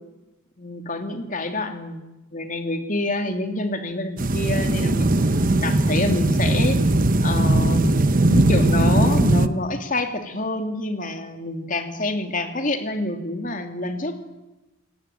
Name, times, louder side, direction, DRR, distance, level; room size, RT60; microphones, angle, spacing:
voice 1, 0.6-5.2 5.6-6.8 7.2-7.9 8.3-14.1, left 2 dB, 40° left, 6 dB, 2.8 m, -27 dB
sound 1, 4.2-9.5, right 2 dB, 40° right, 0.9 m, -19 dB
27.5 x 18.0 x 9.1 m, 1.0 s
head